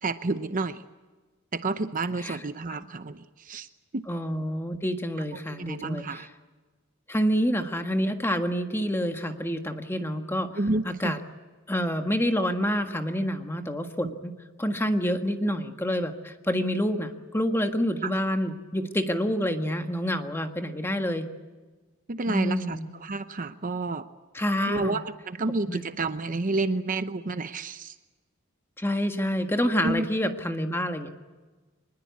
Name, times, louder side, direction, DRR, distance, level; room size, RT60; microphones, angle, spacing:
voice 1, 0.0-0.8 1.5-3.7 3.9-4.0 5.5-6.3 10.6-11.1 14.0-14.2 18.0-18.1 22.1-24.0 24.7-27.9 29.8-30.1, right 3 dB, 40° right, 10 dB, 0.8 m, -30 dB
voice 2, 4.1-6.3 7.1-10.5 11.0-11.2 11.7-14.3 14.6-21.3 22.3-22.9 24.3-25.0 25.7-25.8 28.8-31.1, equal, 10° left, 5 dB, 1.6 m, -27 dB
24.5 x 21.0 x 8.5 m, 1.3 s
head